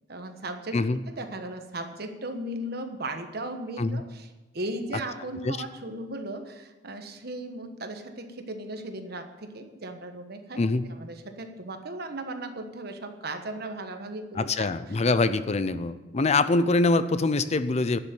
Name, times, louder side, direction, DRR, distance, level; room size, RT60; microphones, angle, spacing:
voice 1, 0.1-0.8 1.1-4.3 4.5-10.6 10.9-14.7, right 1 dB, 60° right, 6 dB, 1.3 m, -36 dB
voice 2, 14.3-18.0, left 3 dB, 35° left, 13 dB, 0.5 m, -24 dB
11.5 x 6.9 x 9.4 m, 1.1 s
head